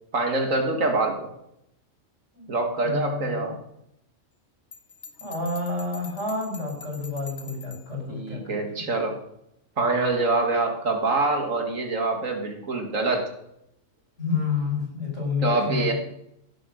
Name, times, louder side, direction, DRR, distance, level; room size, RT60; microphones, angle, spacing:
voice 1, 0.1-1.3 2.5-3.6 8.1-9.2 9.8-13.3 15.4-15.9, right 3 dB, 75° right, 4 dB, 2.4 m, -25 dB
voice 2, 2.8-3.5 5.2-8.6 14.2-15.9, left 4 dB, 60° left, 1 dB, 5.7 m, -29 dB
Bell, 4.7-7.9, left 5 dB, 45° left, 1.7 m, -44 dB
16.5 x 7.8 x 6.5 m, 0.80 s
omnidirectional pair, 1.4 m